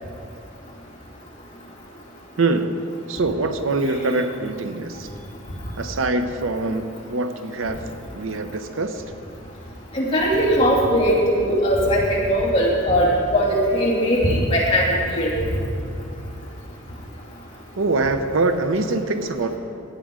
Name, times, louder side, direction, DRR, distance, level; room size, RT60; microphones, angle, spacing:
voice 1, 2.4-5.1 5.8-7.8 8.1-9.0 17.8-19.6, right 3 dB, 80° right, 8 dB, 0.7 m, -24 dB
voice 2, 9.9-14.9 15.1-15.3, equal, 25° left, -6 dB, 2.6 m, -19 dB
16.5 x 9.1 x 3.7 m, 2.6 s
head